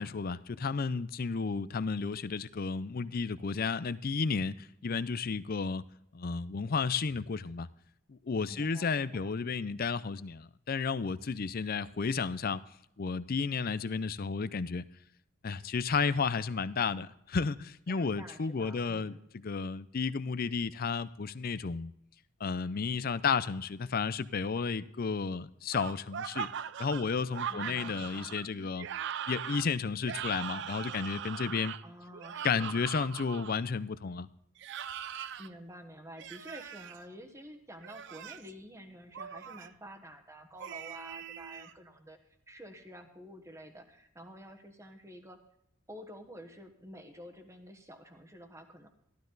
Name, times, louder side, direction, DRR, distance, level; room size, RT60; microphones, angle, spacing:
voice 1, 0.0-5.8 6.1-7.7 8.1-12.6 13.0-14.8 15.4-21.9 22.4-26.5 26.8-28.9 29.3-31.7 32.4-34.3, left 5 dB, 45° left, 16 dB, 0.5 m, -32 dB
voice 2, 8.5-9.3 17.9-19.2 27.5-28.4 31.8-32.8 35.4-45.4 45.9-48.9, equal, 15° right, 6 dB, 1.2 m, -50 dB
sound 1, 25.7-33.5 34.6-35.5 36.2-37.0 37.8-38.5 39.1-39.7 40.6-41.7, right 8 dB, 55° right, 0.4 m, -40 dB
14.0 x 12.5 x 3.9 m, 0.75 s
head